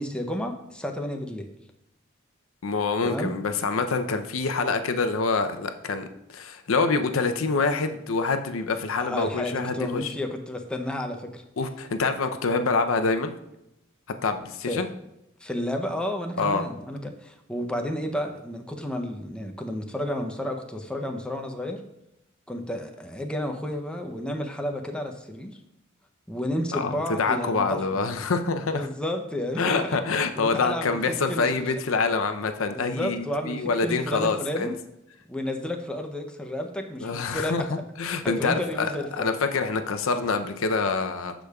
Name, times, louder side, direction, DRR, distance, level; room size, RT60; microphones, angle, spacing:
voice 1, 0.0-1.5 3.0-3.3 9.0-11.4 14.7-14.8 15.4-21.8 22.5-25.6 26.3-28.0 28.7-30.0 30.4-31.0 31.3-31.7 32.6-34.8 35.3-37.6 38.0-39.3, left 1 dB, 5° left, 3 dB, 0.6 m, -31 dB
voice 2, 2.6-10.1 11.6-13.3 14.2-14.9 16.4-16.6 26.7-28.9 29.6-34.7 37.0-41.3, left 4 dB, 80° left, 7 dB, 0.6 m, -26 dB
13.0 x 5.1 x 2.3 m, 0.87 s
head